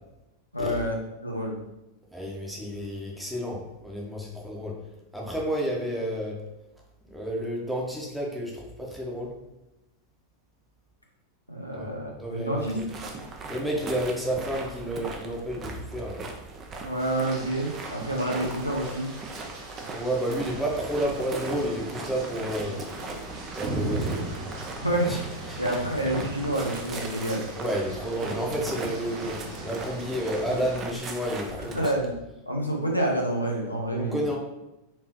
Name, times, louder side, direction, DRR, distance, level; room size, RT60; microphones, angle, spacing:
voice 1, 0.5-0.9 1.2-1.6 11.5-12.8 16.8-19.1 24.8-25.1 25.6-27.4 31.6-32.2 32.5-34.2, right 1 dB, 90° left, -1 dB, 0.7 m, -28 dB
voice 2, 2.1-4.7 5.1-6.4 7.1-9.3 11.7-11.9 12.2-12.8 13.5-16.2 19.9-22.8 23.5-24.2 25.1-25.2 25.5-25.6 27.6-29.4 29.6-31.8 33.9-34.4, equal, ahead, -3 dB, 0.9 m, -30 dB
sound 1, 12.6-31.9, right 3 dB, 25° right, 0.6 m, -39 dB
sound 2, 17.0-30.8, right 2 dB, 45° right, 1.0 m, -38 dB
4.4 x 3.0 x 3.0 m, 0.93 s
figure-of-eight pair, 90°, 0 cm